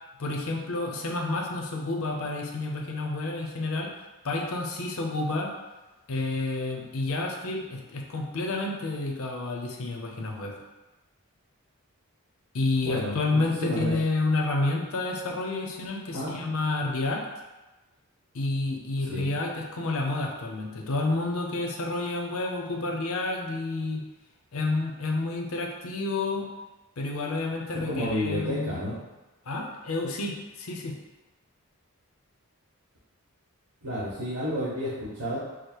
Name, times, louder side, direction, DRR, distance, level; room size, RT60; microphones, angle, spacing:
voice 1, 0.2-3.9 4.2-5.5 6.1-10.5 12.5-17.2 18.3-24.0 24.5-26.5 27.0-28.7 29.5-30.9, left 2 dB, 70° left, 0 dB, 0.7 m, -29 dB
voice 2, 12.8-13.9 16.1-16.4 19.1-19.3 27.7-29.0 33.8-35.4, equal, 80° right, -11 dB, 1.4 m, -31 dB
4.8 x 2.0 x 4.5 m, 1.1 s
head